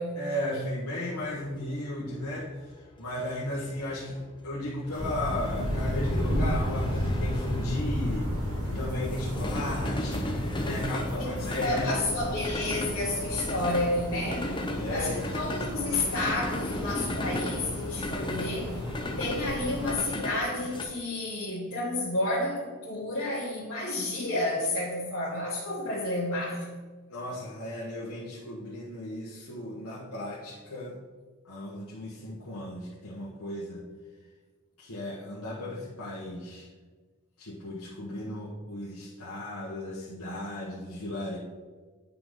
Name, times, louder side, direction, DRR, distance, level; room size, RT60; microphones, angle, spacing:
voice 1, 0.1-12.1 14.8-15.3 27.1-31.0 31.4-33.8 34.8-36.7 37.4-41.4, left 1 dB, 75° left, -7 dB, 1.4 m, -35 dB
sound 1, 1.3-20.8, left 1 dB, 20° left, 0.7 m, -37 dB
sound 2, 4.9-19.9, equal, 70° right, 2.7 m, -33 dB
voice 2, 11.1-14.6 14.9-18.8 19.2-26.7, left 2 dB, 60° left, -8 dB, 1.8 m, -31 dB
9.6 x 5.9 x 3.7 m, 1.4 s
head